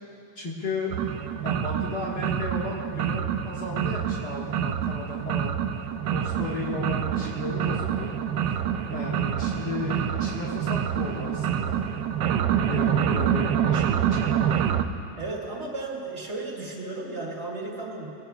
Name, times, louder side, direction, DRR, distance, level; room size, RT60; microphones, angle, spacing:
voice 1, 0.4-1.0 1.4-5.6 6.1-8.1 8.9-11.8 12.7-14.3, left 2 dB, 65° left, -5 dB, 2.1 m, -34 dB
sound 1, 0.9-14.8, right 9 dB, 80° right, 1.2 m, -27 dB
voice 2, 15.2-18.1, right 3 dB, 35° right, -3 dB, 2.6 m, -34 dB
22.0 x 17.0 x 2.3 m, 2.7 s
omnidirectional pair, 2.0 m